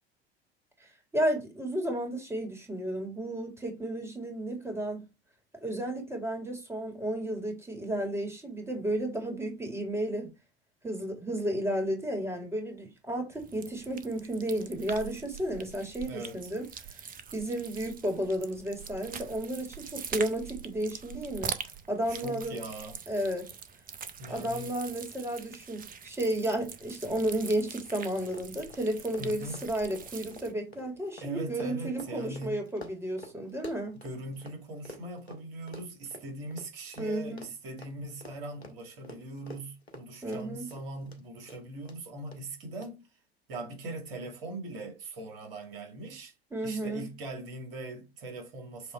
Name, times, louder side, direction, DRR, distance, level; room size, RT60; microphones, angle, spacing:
voice 1, 1.1-5.1 5.6-10.3 10.8-16.7 17.3-21.5 21.9-22.6 23.1-23.5 24.3-34.0 37.0-37.5 40.2-40.7 46.5-47.1, right 1 dB, 10° right, 2.3 m, -32 dB
sound 1, 13.3-30.5, right 7 dB, 25° right, 0.9 m, -43 dB
voice 2, 16.1-16.5 22.1-23.0 24.2-24.8 29.2-29.6 31.2-32.6 33.9-43.1 43.5-46.3 46.6-48.9, right 2 dB, 65° right, 2.4 m, -41 dB
Run, 26.3-26.4 26.6-26.8 27.1-34.6 34.9-41.2 41.5-42.0 42.3-42.4 42.8-42.9, equal, 90° left, 1.2 m, -48 dB
7.9 x 3.1 x 4.4 m
figure-of-eight pair, 75°, 31 cm